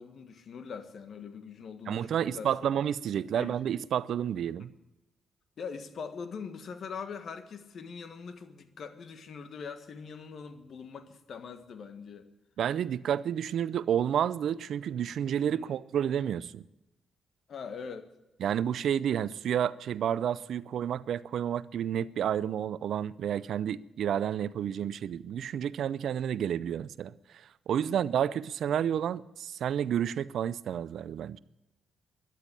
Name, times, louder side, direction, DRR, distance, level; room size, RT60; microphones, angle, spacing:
voice 1, 0.0-2.7 3.3-3.6 5.6-12.3 15.5-15.7 17.5-18.1 27.8-28.0, left 6 dB, 60° left, 1.5 m, -42 dB
voice 2, 1.9-4.7 12.6-16.6 18.4-31.4, right 9 dB, 70° right, 0.5 m, -30 dB
13.0 x 11.0 x 8.8 m
hypercardioid pair, 45°, 0 cm